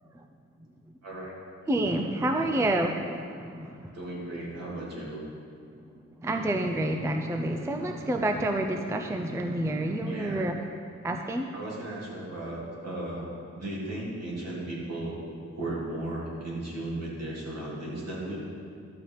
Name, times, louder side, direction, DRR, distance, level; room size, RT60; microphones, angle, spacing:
voice 1, 1.0-1.3 2.4-2.5 3.9-5.2 10.0-10.5 11.5-15.2 15.4-18.4, right 1 dB, 60° right, -5 dB, 2.7 m, -36 dB
voice 2, 1.7-3.9 6.2-10.6 11.0-11.5, right 1 dB, 10° right, 4 dB, 0.4 m, -28 dB
11.5 x 7.5 x 4.7 m, 2.4 s
wide cardioid pair, 165°, 29 cm